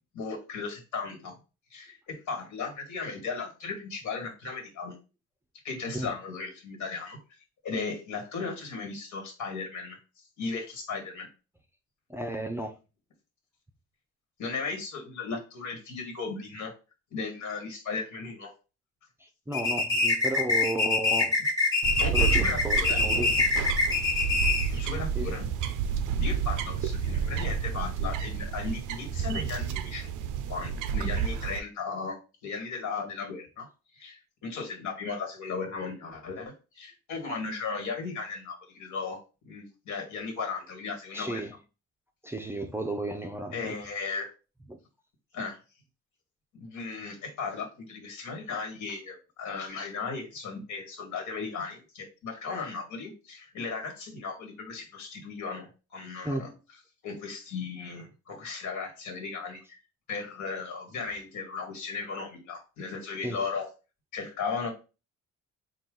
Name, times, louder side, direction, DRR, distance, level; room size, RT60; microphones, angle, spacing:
voice 1, 0.1-1.3 1.7-5.0 5.6-7.2 7.6-10.0 10.4-11.3 14.4-16.7 17.1-18.5 22.0-23.0 24.7-25.4 26.2-30.1 30.5-32.2 32.4-33.7 33.9-39.2 39.4-41.4 43.5-44.3 45.3-45.6 46.5-56.5 57.0-59.8 60.1-63.7 64.1-64.7, left 4 dB, 75° left, 1.7 m, -36 dB
voice 2, 12.1-12.8 19.2-21.4 22.1-23.4 25.1-25.3 41.1-41.5 42.2-43.7 56.2-56.6 63.2-63.5, right 1 dB, 10° right, 0.5 m, -33 dB
sound 1, 19.5-24.8, left 3 dB, 10° left, 1.4 m, -25 dB
sound 2, 21.8-31.6, right 7 dB, 85° right, 0.5 m, -30 dB
4.2 x 2.4 x 3.8 m
cardioid pair, 90°, 30 cm